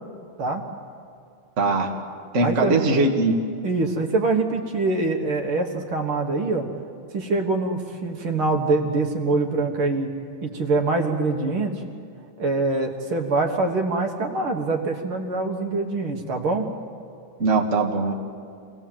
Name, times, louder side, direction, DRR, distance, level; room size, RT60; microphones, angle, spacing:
voice 1, 1.6-1.9 2.3-3.4 17.4-18.1, right 3 dB, 35° right, 1 dB, 1.2 m, -20 dB
voice 2, 2.4-2.8 3.6-6.7 7.1-10.1 10.4-11.8 12.4-16.7, right 3 dB, 50° right, 3 dB, 2.0 m, -24 dB
26.0 x 18.0 x 7.5 m, 2.3 s
omnidirectional pair, 3.4 m